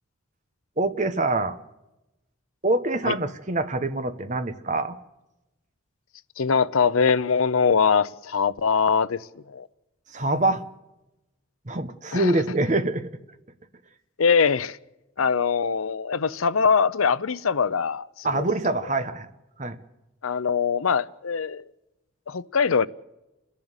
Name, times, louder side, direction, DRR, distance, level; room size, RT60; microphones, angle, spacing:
voice 1, 0.8-1.6 2.6-5.0 10.1-10.6 11.7-13.1 18.2-19.3 19.6-19.8, right 2 dB, 35° right, 1.1 m, -25 dB
voice 2, 6.4-9.2 9.5-9.7 12.1-12.3 14.2-14.8 15.2-18.5 20.2-21.6 22.3-22.9, left 5 dB, 85° left, 0.6 m, -22 dB
29.5 x 11.0 x 8.1 m
head